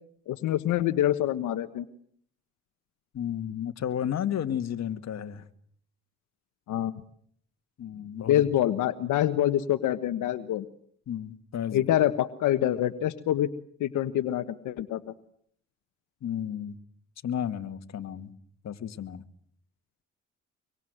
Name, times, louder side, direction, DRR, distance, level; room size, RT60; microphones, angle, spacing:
voice 1, 0.3-1.8 6.7-7.0 8.2-10.6 11.7-13.5 13.8-15.1, left 12 dB, 85° left, 9 dB, 1.4 m, -26 dB
voice 2, 3.1-5.4 7.8-8.5 11.1-11.8 16.2-16.8 17.2-18.3 18.6-19.2, left 9 dB, 60° left, 9 dB, 2.0 m, -32 dB
25.0 x 24.0 x 8.0 m, 0.64 s
cardioid pair, 90°, 30 cm